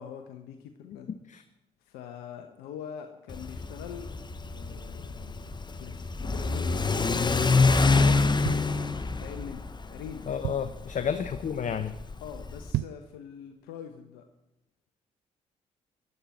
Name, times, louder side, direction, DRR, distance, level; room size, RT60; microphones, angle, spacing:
voice 1, 0.0-1.1 1.8-4.1 4.4-5.4 5.7-8.3 9.2-9.6 9.9-10.3 11.0-11.2 12.2-14.2, left 8 dB, 70° left, 6 dB, 1.1 m, -43 dB
Car / Accelerating revving vroom, 3.3-12.7, left 3 dB, 25° left, 1.2 m, -27 dB
sound 1, 8.4-9.4 9.9-10.0 10.2-10.9 11.4-11.6 11.9-12.0 12.5-13.2 13.6-13.7, right 16 dB, 60° right, 0.4 m, -34 dB
voice 2, 10.3-12.0, left 7 dB, 45° left, 10 dB, 0.9 m, -31 dB
18.5 x 12.0 x 4.4 m, 0.90 s
hypercardioid pair, 45°, 17 cm